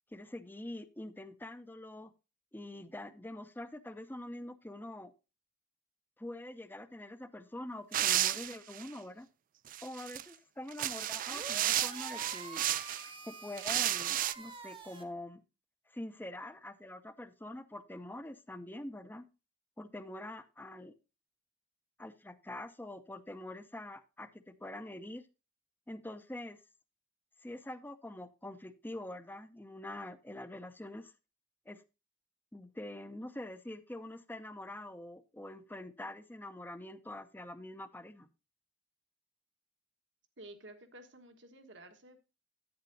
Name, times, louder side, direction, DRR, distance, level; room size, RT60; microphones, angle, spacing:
voice 1, 0.1-2.1 2.5-5.1 6.2-9.3 9.8-12.7 13.2-15.4 15.9-19.3 19.8-20.9 22.0-25.3 25.9-26.6 27.4-31.1 31.7-31.8 32.5-38.3, left 1 dB, 10° left, 11 dB, 0.7 m, -45 dB
sound 1, 7.9-8.9 9.7-10.2 10.7-13.1 13.6-14.3, right 12 dB, 45° right, 0.3 m, -32 dB
sound 2, 11.3-15.0, right 3 dB, 30° right, 1.1 m, -47 dB
voice 2, 40.4-42.2, right 1 dB, 70° right, 7 dB, 1.5 m, -52 dB
10.5 x 8.8 x 2.7 m, 0.29 s
head